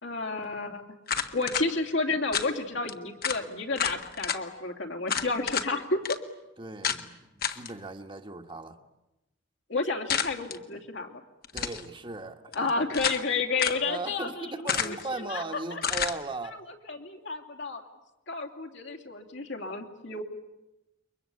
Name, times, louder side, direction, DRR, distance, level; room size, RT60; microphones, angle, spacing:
voice 1, 0.0-0.8 1.3-6.2 9.7-11.2 12.5-15.0 15.3-15.4 15.7-15.8 16.9-17.8 18.3-20.2, left 3 dB, 70° left, 3.1 m, -31 dB
sound 1, 1.1-1.7 2.3-2.5 2.9-3.0 3.2-3.4 3.8-4.4 5.1-5.7 6.0-6.2 6.8-7.0 7.4-7.7 10.1-10.6 11.4-11.8 12.5-13.3 13.6-13.8 14.7-15.1 15.8-16.2, left 7 dB, 55° left, 1.5 m, -30 dB
voice 2, 6.6-8.8 11.5-12.9 13.8-16.6, right 2 dB, 25° right, 1.5 m, -38 dB
29.0 x 23.0 x 8.6 m
head